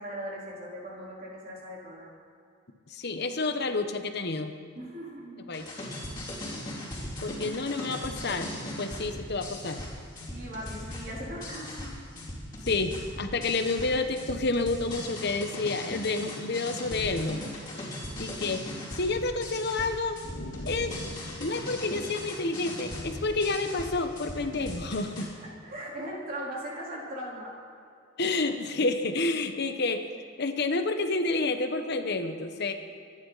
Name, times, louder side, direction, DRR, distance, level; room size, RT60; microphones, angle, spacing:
voice 1, 0.0-2.1 4.8-5.5 6.5-6.7 10.3-11.9 24.3-24.5 25.4-27.5, equal, 45° right, -4 dB, 3.8 m, -39 dB
voice 2, 2.9-4.5 5.5-5.7 7.2-9.8 12.6-17.4 18.2-18.7 18.9-20.2 20.6-20.9 21.4-25.3 28.2-30.1 30.4-32.7, left 3 dB, 55° left, 7 dB, 1.0 m, -29 dB
sound 1, 5.5-25.2, left 1 dB, 20° left, 3.9 m, -39 dB
sound 2, 20.2-23.8, left 1 dB, 75° left, 1.7 m, -44 dB
25.5 x 11.0 x 4.1 m, 2.4 s
head